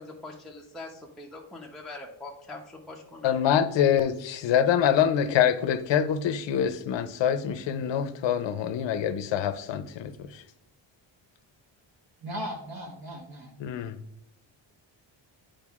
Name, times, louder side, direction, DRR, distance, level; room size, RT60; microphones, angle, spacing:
voice 1, 0.0-3.4, left 2 dB, ahead, 0.6 m, -43 dB
voice 2, 3.2-10.4 13.6-14.0, left 9 dB, 65° left, 0.6 m, -25 dB
voice 3, 12.2-13.5, equal, 50° right, 1.2 m, -37 dB
8.8 x 5.0 x 2.4 m
wide cardioid pair, 125°, 47 cm